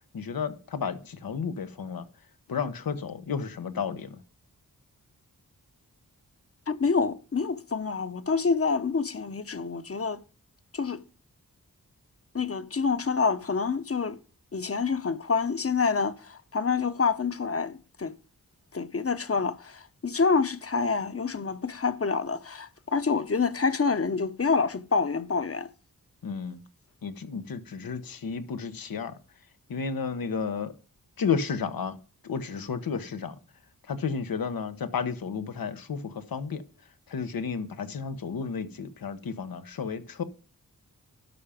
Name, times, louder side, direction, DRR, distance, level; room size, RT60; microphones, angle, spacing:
voice 1, 0.1-2.1 2.5-4.2 26.2-26.6 27.0-29.2 29.7-30.7 31.2-32.0 32.2-33.4 33.9-36.6 37.1-40.2, left 6 dB, 85° left, 1.1 m, -32 dB
voice 2, 6.7-10.2 10.7-11.0 12.3-14.2 14.5-18.1 18.7-25.7, left 5 dB, 40° left, 1.0 m, -27 dB
12.0 x 5.7 x 5.1 m
cardioid pair, 50°, 34 cm